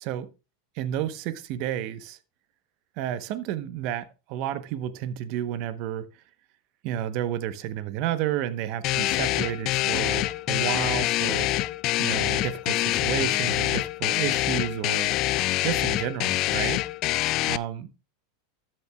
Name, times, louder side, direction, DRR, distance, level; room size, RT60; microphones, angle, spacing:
voice 1, 0.7-2.2 3.0-6.1 6.8-11.5 12.0-15.1 15.6-16.8 17.4-17.9, right 11 dB, 55° right, 1.0 m, -31 dB
sound 1, 8.8-17.6, left 17 dB, 50° left, 0.3 m, -25 dB
13.0 x 7.6 x 2.3 m
supercardioid pair, 115°, 0 cm